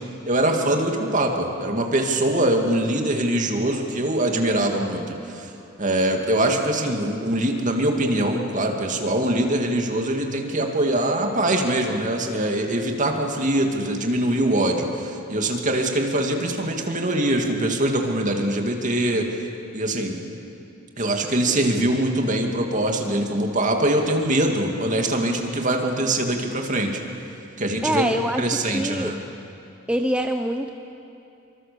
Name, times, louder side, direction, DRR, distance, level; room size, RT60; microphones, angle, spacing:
voice 1, 0.3-5.5 5.8-19.3 19.7-20.2 21.0-27.0 27.6-29.2, right 1 dB, 40° right, 3 dB, 2.4 m, -23 dB
voice 2, 27.8-28.4 28.7-29.1 29.9-30.7, right 1 dB, 5° right, 5 dB, 0.7 m, -24 dB
25.0 x 25.0 x 7.0 m, 2.7 s
head